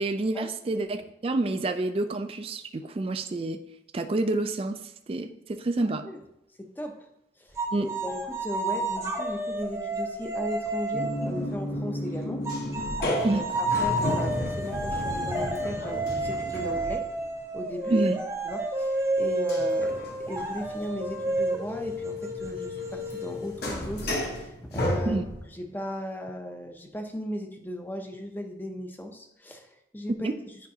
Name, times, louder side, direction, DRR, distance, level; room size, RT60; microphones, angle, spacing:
voice 1, 0.0-3.6 3.9-4.8 5.1-6.0 7.7-7.9 13.2-13.4 17.9-18.2 25.1-25.3 30.2-30.3, right 2 dB, 30° right, 8 dB, 0.3 m, -28 dB
voice 2, 6.6-7.0 7.4-12.4 13.3-17.1 17.5-18.0 18.4-25.2 25.5-30.3, equal, 10° left, 4 dB, 0.6 m, -37 dB
sound 1, 7.6-11.5 12.5-23.8, right 1 dB, 15° right, 0.8 m, -30 dB
sound 2, 10.9-17.3 19.5-25.6, equal, 60° left, 1.2 m, -33 dB
9.4 x 5.1 x 2.8 m, 0.82 s
head